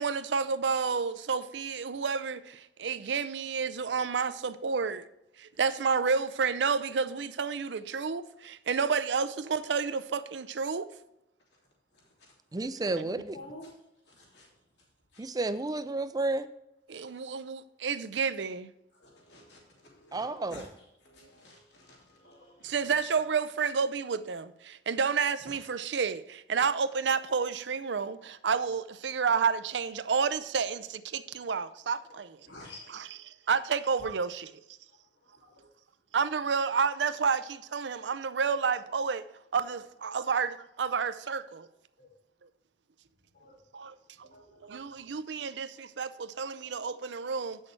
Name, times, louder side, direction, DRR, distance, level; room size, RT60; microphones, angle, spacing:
voice 1, 0.0-5.0 5.4-10.9 16.9-18.7 22.6-32.4 33.5-34.5 36.1-39.3 39.5-41.7 43.7-44.3 44.7-47.6, right 5 dB, 80° right, 0.5 m, -30 dB
voice 2, 11.9-12.3 13.0-13.7 14.0-14.6 15.1-15.3 16.9-17.2 18.9-23.2 25.4-25.5 32.1-32.2 32.4-33.2 33.6-33.7 34.9-35.7 40.1-40.2 42.0-42.1 43.3-43.9 44.2-45.5, left 1 dB, 70° left, 3.0 m, -52 dB
voice 3, 12.5-13.4 15.2-16.5 20.1-20.7, right 2 dB, 20° right, 0.4 m, -31 dB
8.8 x 6.4 x 4.6 m
head